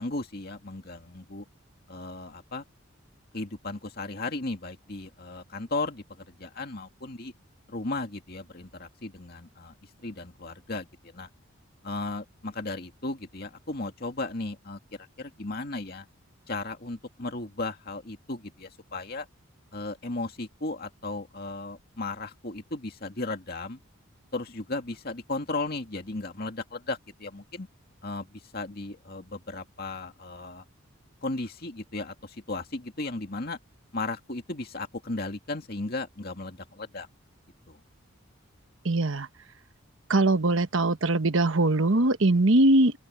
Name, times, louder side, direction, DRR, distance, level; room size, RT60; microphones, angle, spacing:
voice 1, 0.0-1.5 1.9-2.6 3.3-7.3 7.7-11.3 11.8-16.1 16.5-19.3 19.7-23.8 24.3-27.7 28.0-30.6 31.2-33.6 33.9-37.1 37.7-37.8, left 2 dB, 45° left, 2.3 m, -35 dB
voice 2, 38.8-39.3 40.1-42.9, right 2 dB, 65° right, 1.2 m, -21 dB
open air
head